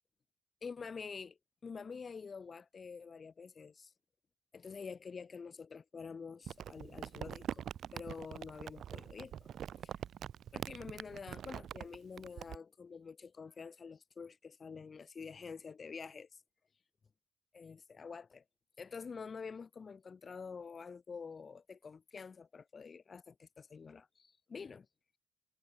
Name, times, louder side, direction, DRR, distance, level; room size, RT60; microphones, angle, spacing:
voice 1, 0.6-3.9 4.5-7.6 7.9-9.5 9.8-9.9 10.5-16.4 17.5-18.4 18.8-24.9, left 5 dB, 35° left, 1.6 m, -47 dB
Crumpling crinkling, 6.5-12.6, right 9 dB, 65° right, 2.4 m, -44 dB
cardioid pair, 145°, 0 cm